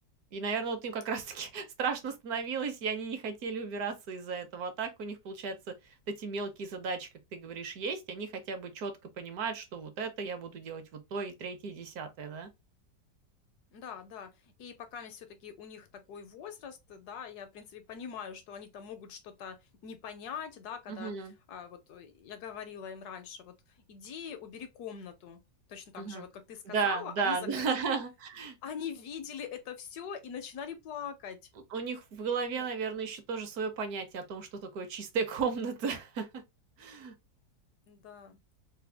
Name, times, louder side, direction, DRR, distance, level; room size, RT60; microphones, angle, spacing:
voice 1, 0.3-5.7 6.1-10.8 11.1-12.5 20.9-21.3 26.0-26.3 26.7-28.6 31.7-36.4 36.8-37.1, right 5 dB, 65° right, 1.1 m, -35 dB
voice 2, 13.7-19.6 19.8-21.1 21.5-25.4 25.7-28.0 28.6-31.4 32.6-32.7 37.9-38.4, left 7 dB, 70° left, 1.0 m, -43 dB
3.4 x 2.1 x 3.3 m
omnidirectional pair, 1.9 m